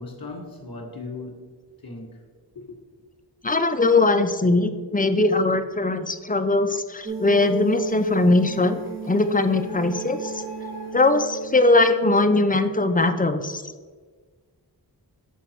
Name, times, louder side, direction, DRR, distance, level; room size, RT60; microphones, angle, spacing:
voice 1, 0.0-1.5 1.8-2.2 2.6-2.8, left 3 dB, 55° left, 1 dB, 1.8 m, -37 dB
voice 2, 3.4-8.8 9.1-10.4 10.9-13.6, left 2 dB, 20° left, 9 dB, 0.5 m, -20 dB
sound 1, 7.0-13.0, right 5 dB, 30° right, 1.2 m, -35 dB
Printer, 7.8-12.4, left 1 dB, 65° right, 2.0 m, -45 dB
6.3 x 4.9 x 4.5 m, 1.5 s
wide cardioid pair, 55°, 41 cm